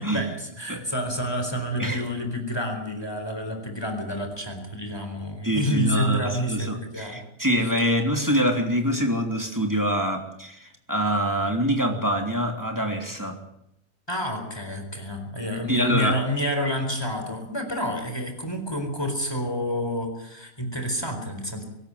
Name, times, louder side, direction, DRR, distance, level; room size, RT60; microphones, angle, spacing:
voice 1, 0.0-7.2 7.8-7.9 14.1-21.6, equal, 15° left, 5 dB, 4.3 m, -29 dB
voice 2, 5.4-13.4 15.7-16.2, equal, 10° right, 3 dB, 3.1 m, -25 dB
23.5 x 13.0 x 9.6 m, 0.80 s
omnidirectional pair, 1.5 m